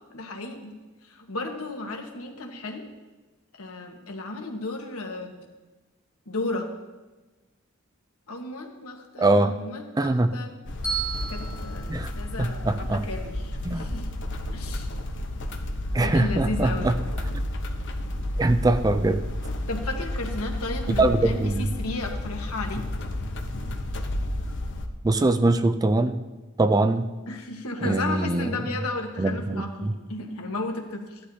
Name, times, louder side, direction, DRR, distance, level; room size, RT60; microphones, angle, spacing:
voice 1, 0.1-0.7 1.0-2.9 3.5-5.5 6.3-6.7 8.3-10.5 11.3-14.1 14.5-14.9 16.0-16.9 19.7-22.9 27.3-31.2, left 2 dB, 85° left, 3 dB, 1.4 m, -34 dB
voice 2, 9.2-9.5 10.0-10.3 11.9-12.1 12.4-13.0 13.6-13.9 15.9-17.0 18.4-19.2 21.0-21.7 25.0-26.2 26.6-27.1 27.8-28.5 29.2-29.9, right 2 dB, 15° right, 10 dB, 0.4 m, -22 dB
sound 1, 10.7-24.9, left 1 dB, 60° left, 0.9 m, -31 dB
Bell, 10.8-13.0, right 5 dB, 15° left, 3.3 m, -34 dB
14.5 x 11.5 x 2.8 m, 1.2 s
head